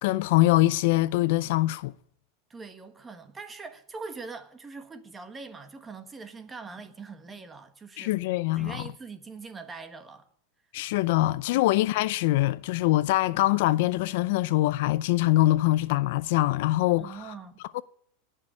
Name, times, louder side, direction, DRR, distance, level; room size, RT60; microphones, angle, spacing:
voice 1, 0.0-1.9 8.0-8.9 10.7-17.3 17.7-17.8, left 17 dB, 60° left, 0.5 m, -24 dB
voice 2, 2.5-8.2 8.5-10.3 17.0-17.6, right 4 dB, 15° right, 1.4 m, -42 dB
18.5 x 6.6 x 9.9 m
supercardioid pair, 155°, 0 cm